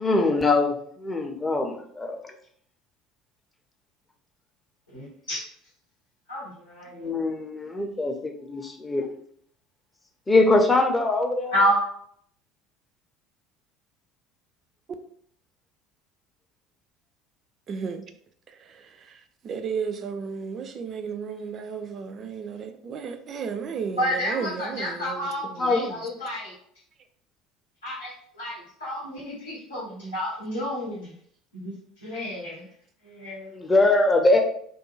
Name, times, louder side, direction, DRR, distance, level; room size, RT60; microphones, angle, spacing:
voice 1, 0.0-2.3 6.9-9.1 10.3-11.6 25.6-25.9 33.5-34.4, left 2 dB, 20° left, 4 dB, 0.5 m, -22 dB
voice 2, 4.9-5.4 6.3-7.1 11.5-11.8 24.0-26.5 27.8-31.1 31.5-31.7 32.0-32.7 33.0-33.5, equal, 90° left, -6 dB, 0.8 m, -30 dB
voice 3, 17.7-18.0 19.4-25.3 25.6-25.9, right 6 dB, 40° right, 8 dB, 0.3 m, -33 dB
2.4 x 2.2 x 3.0 m, 0.64 s
figure-of-eight pair, 60°, 0 cm